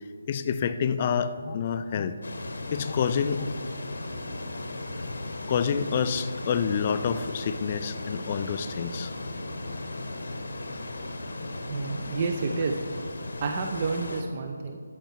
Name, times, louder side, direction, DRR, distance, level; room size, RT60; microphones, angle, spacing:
voice 1, 0.3-2.2 2.7-3.5 5.5-9.1, left 7 dB, 35° left, 11 dB, 0.4 m, -28 dB
sound 1, 2.2-14.2, left 2 dB, 85° left, 1.1 m, -36 dB
voice 2, 11.7-12.7 13.4-14.8, right 4 dB, 35° right, 4 dB, 0.5 m, -29 dB
13.0 x 4.5 x 4.5 m, 2.1 s
figure-of-eight pair, 160°, 0 cm